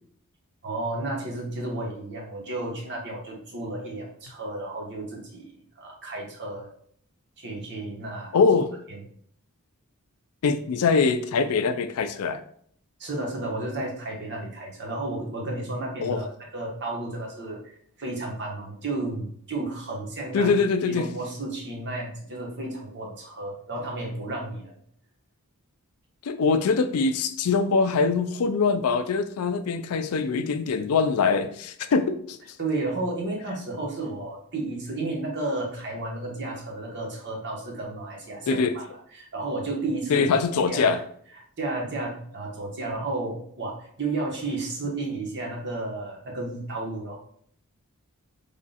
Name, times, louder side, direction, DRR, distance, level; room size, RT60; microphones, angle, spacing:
voice 1, 0.6-5.5 5.8-6.7 7.4-8.3 13.0-17.7 18.0-20.5 20.9-24.7 32.6-38.8 39.1-40.3 40.7-41.0 41.6-47.2, right 2 dB, 50° right, -1 dB, 1.1 m, -32 dB
voice 2, 8.3-8.7 10.4-12.4 16.0-16.2 20.3-21.1 26.2-32.4 38.5-38.8 40.1-41.0, left 4 dB, 75° left, 9 dB, 0.4 m, -23 dB
3.5 x 2.4 x 4.0 m, 0.63 s
head